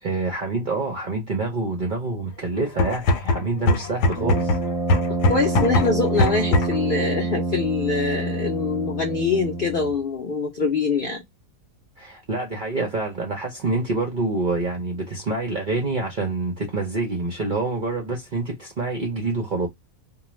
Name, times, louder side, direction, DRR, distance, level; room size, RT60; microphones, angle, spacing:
voice 1, 0.0-4.5 12.0-19.7, right 3 dB, 55° right, 0.5 m, -26 dB
sound 1, 2.7-6.9, left 2 dB, 90° left, 1.1 m, -22 dB
Brass instrument, 4.1-10.0, right 2 dB, 15° right, 1.0 m, -27 dB
voice 2, 5.1-11.2, left 4 dB, 65° left, 0.5 m, -24 dB
2.4 x 2.3 x 3.0 m
omnidirectional pair, 1.7 m